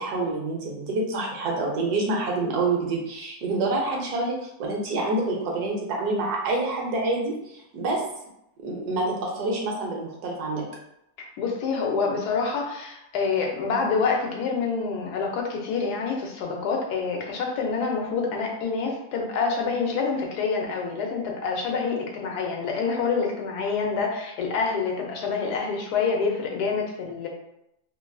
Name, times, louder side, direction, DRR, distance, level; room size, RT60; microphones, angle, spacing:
voice 1, 0.0-8.0 8.6-10.6, right 2 dB, 80° right, -1 dB, 1.3 m, -27 dB
voice 2, 11.2-27.3, left 5 dB, 90° left, 0 dB, 1.2 m, -27 dB
3.3 x 2.5 x 2.2 m, 0.81 s
omnidirectional pair, 1.7 m